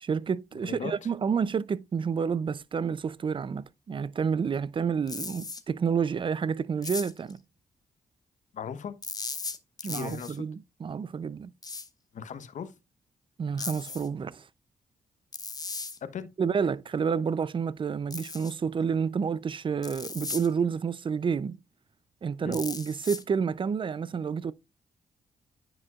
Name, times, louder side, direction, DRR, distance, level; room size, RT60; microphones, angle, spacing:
voice 1, 0.0-7.4 9.8-11.5 13.4-14.4 16.4-21.6 22.2-24.5, right 6 dB, 40° right, 0.5 m, -29 dB
voice 2, 0.6-1.1 8.5-8.9 9.8-10.4 12.1-12.7 16.0-16.3 22.4-22.6, left 7 dB, 65° left, 0.9 m, -38 dB
sound 1, 5.1-5.6 6.8-7.3 9.0-10.4 11.6-11.9 13.6-14.1 15.3-16.0 18.1-18.6 19.8-20.5 22.5-23.2, left 4 dB, 30° left, 0.9 m, -37 dB
9.4 x 5.1 x 2.3 m
supercardioid pair, 60°, 14 cm